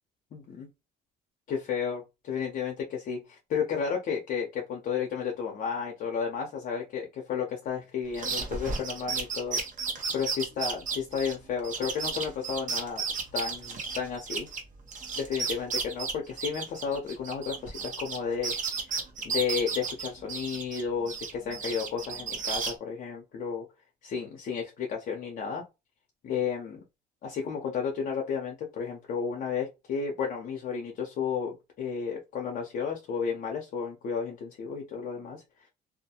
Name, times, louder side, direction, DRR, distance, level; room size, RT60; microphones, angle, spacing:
voice 1, 0.3-0.7 1.5-9.6 10.1-13.0 13.3-14.5 15.2-18.5 18.8-19.0 19.2-23.6 24.0-25.6 26.2-26.8 27.2-35.7, left 6 dB, 55° left, 0 dB, 0.6 m, -32 dB
sound 1, 8.1-14.6 14.9-18.2 18.4-20.8 21.1-22.7, right 5 dB, 50° right, 0.8 m, -33 dB
2.3 x 2.1 x 2.8 m, 0.25 s
cardioid pair, 110°, 17 cm